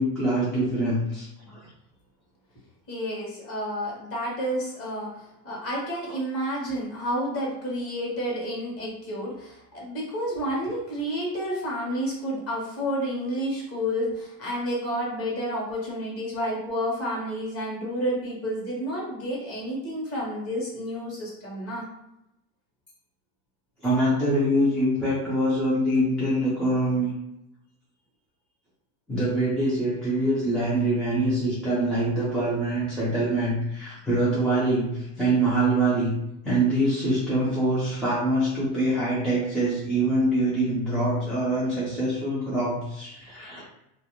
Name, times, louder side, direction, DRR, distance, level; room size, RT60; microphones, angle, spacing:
voice 1, 0.0-1.6 23.8-27.1 29.1-36.2 36.4-43.6, right 1 dB, ahead, -10 dB, 0.4 m, -24 dB
voice 2, 2.9-21.8, equal, 30° left, -4 dB, 1.0 m, -30 dB
2.4 x 2.1 x 2.8 m, 0.85 s
supercardioid pair, 130°, 47 cm